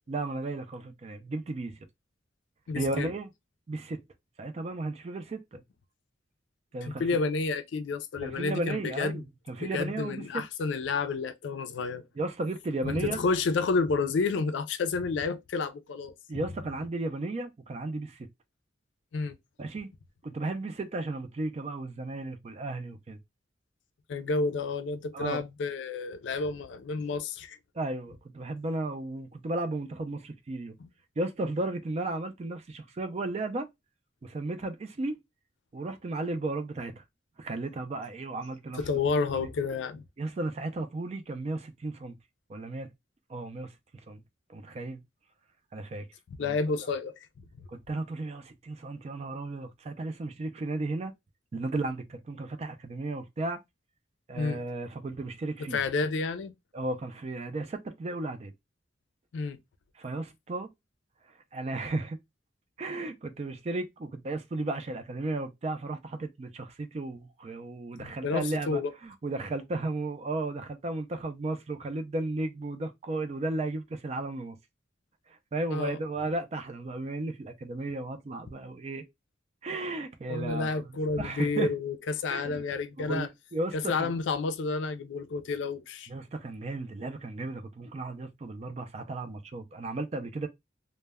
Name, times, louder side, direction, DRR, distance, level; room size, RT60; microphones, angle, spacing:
voice 1, 0.1-1.7 2.7-3.3 3.7-4.0 4.4-5.6 6.7-7.0 8.2-10.4 12.2-13.2 16.3-18.3 19.6-19.9 20.2-23.2 25.1-25.4 27.7-30.8 31.2-33.7 34.2-35.2 35.7-37.0 37.4-38.8 39.2-39.5 40.2-42.2 42.5-42.9 43.3-43.7 44.1-44.2 44.5-45.0 45.7-46.1 46.4-46.6 47.7-51.1 51.5-53.6 54.3-55.8 56.7-58.5 60.0-60.7 61.5-62.2 62.8-74.6 75.3-79.0 79.6-80.9 81.2-81.7 82.3-82.6 83.0-84.1 86.1-90.5, right 2 dB, 35° right, 0.3 m, -34 dB
voice 2, 2.7-3.1 6.8-9.2 9.6-12.0 12.8-16.1 19.1-19.3 24.1-27.6 30.8-30.9 38.7-40.0 46.4-47.3 54.4-54.6 55.7-56.5 59.3-59.6 68.0-68.9 75.7-76.0 80.3-83.3 83.7-86.1, left 4 dB, 80° left, 0.4 m, -30 dB
2.1 x 2.1 x 3.3 m
head